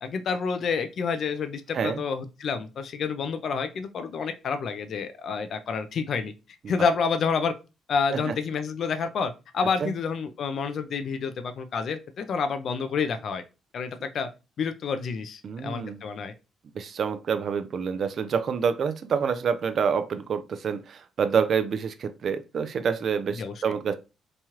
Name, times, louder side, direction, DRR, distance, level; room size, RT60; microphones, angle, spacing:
voice 1, 0.0-6.3 6.7-7.5 7.9-13.4 13.7-14.3 14.6-16.3 23.4-23.5, left 5 dB, 60° left, 0.4 m, -29 dB
voice 2, 15.4-16.0 16.7-24.0, right 6 dB, 55° right, 0.4 m, -27 dB
3.0 x 2.3 x 2.8 m
cardioid pair, 90°, 0 cm